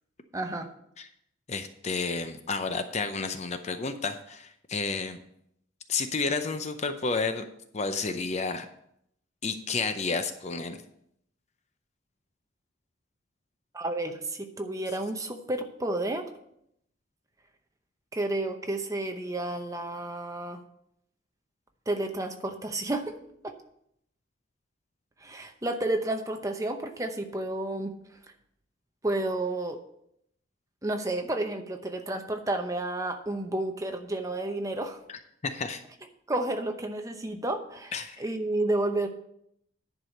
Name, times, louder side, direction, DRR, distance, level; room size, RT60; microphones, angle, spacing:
voice 1, 0.3-0.7 13.7-16.3 18.1-20.6 21.9-23.1 23.4-23.5 25.2-27.9 29.0-29.8 30.8-35.0 36.3-39.1, right 2 dB, 15° right, 5 dB, 0.8 m, -31 dB
voice 2, 1.5-5.2 5.9-7.5 7.7-8.7 9.4-10.8 35.1-35.8 37.9-38.2, left 4 dB, 35° left, 8 dB, 0.5 m, -31 dB
10.5 x 4.8 x 6.5 m, 0.74 s
head